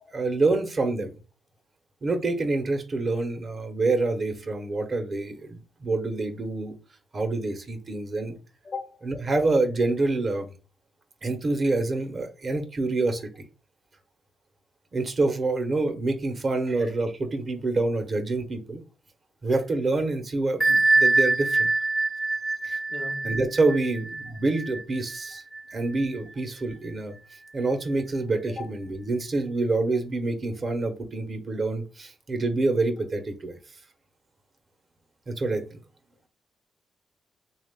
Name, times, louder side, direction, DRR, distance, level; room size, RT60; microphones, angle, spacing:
voice 1, 0.1-1.1 2.0-6.7 7.1-8.4 9.0-10.5 11.2-13.4 14.9-18.8 19.4-21.7 22.6-22.8 23.2-25.4 25.7-27.2 27.5-33.6 35.3-35.8, right 3 dB, 45° right, 0.9 m, -27 dB
Bell, 20.6-26.0, right 3 dB, 5° right, 0.6 m, -24 dB
voice 2, 22.9-23.3 28.6-28.7, left 4 dB, 50° left, 0.5 m, -36 dB
3.3 x 2.4 x 3.6 m
cardioid pair, 65°, 0 cm